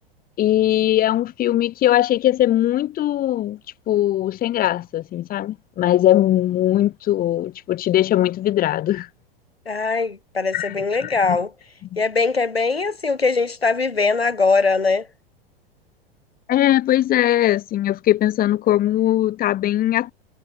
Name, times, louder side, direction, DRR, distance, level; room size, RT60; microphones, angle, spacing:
voice 1, 0.4-3.6 3.9-9.1 10.5-10.7 11.0-11.4 11.9-12.0 16.5-20.1, left 13 dB, 30° left, 2.8 m, -20 dB
voice 2, 9.7-11.5 12.0-15.1, left 4 dB, 80° left, 2.7 m, -21 dB
figure-of-eight pair, 90°, 30 cm